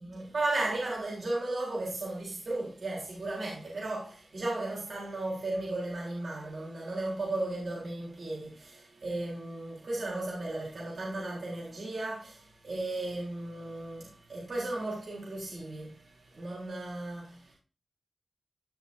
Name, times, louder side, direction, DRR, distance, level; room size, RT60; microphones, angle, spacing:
voice 1, 0.0-17.5, right 2 dB, 70° right, 3.7 m, -35 dB
15.0 x 6.1 x 2.7 m
wide cardioid pair, 110°, 0 cm